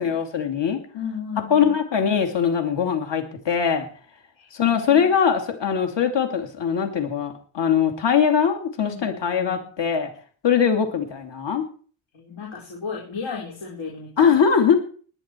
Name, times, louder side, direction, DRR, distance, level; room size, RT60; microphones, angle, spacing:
voice 1, 0.0-0.8 1.5-3.9 4.5-10.1 10.4-11.6 14.2-14.8, left 7 dB, 65° left, 4 dB, 2.7 m, -21 dB
voice 2, 0.9-1.8 4.4-5.0 8.8-9.6 12.1-14.3, left 6 dB, 80° left, -3 dB, 4.5 m, -34 dB
20.0 x 10.5 x 4.5 m, 0.42 s
wide cardioid pair, 135°, 47 cm